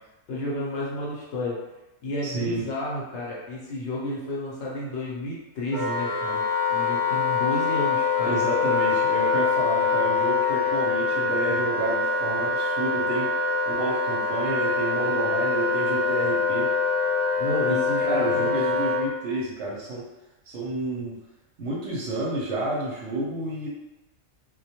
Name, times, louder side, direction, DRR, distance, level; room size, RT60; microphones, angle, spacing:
voice 1, 0.3-1.6 2.0-6.4 6.7-8.3 17.4-18.8, left 1 dB, 65° left, -5 dB, 0.8 m, -31 dB
voice 2, 2.2-2.6 8.3-13.3 13.7-16.7 17.7-20.0 20.5-21.2 21.6-23.7, right 2 dB, 65° right, -4 dB, 0.8 m, -30 dB
Wind instrument woodwind instrument, 5.7-19.1, left 4 dB, 5° left, 0.7 m, -24 dB
2.2 x 2.1 x 2.8 m, 1.0 s
omnidirectional pair, 1.4 m